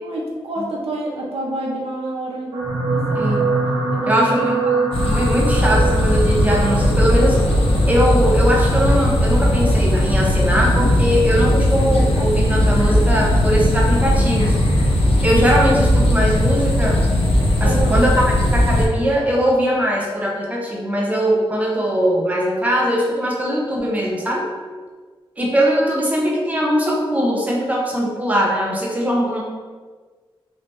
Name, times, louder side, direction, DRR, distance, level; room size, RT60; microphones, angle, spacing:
voice 1, 0.0-2.5 2.9-3.0 3.9-4.5 17.6-18.0, right 1 dB, 90° right, -2 dB, 0.7 m, -28 dB
sound 1, 2.5-11.0 11.7-12.0 12.3-12.4, right 3 dB, 55° right, 0.8 m, -25 dB
voice 2, 4.1-7.4 7.9-14.6 15.2-17.0 17.6-24.5 25.4-29.4, equal, 15° right, -2 dB, 0.7 m, -20 dB
sound 2, 4.9-18.9, left 1 dB, 75° left, 0.5 m, -17 dB
3.2 x 2.8 x 3.0 m, 1.4 s
wide cardioid pair, 95°, 10 cm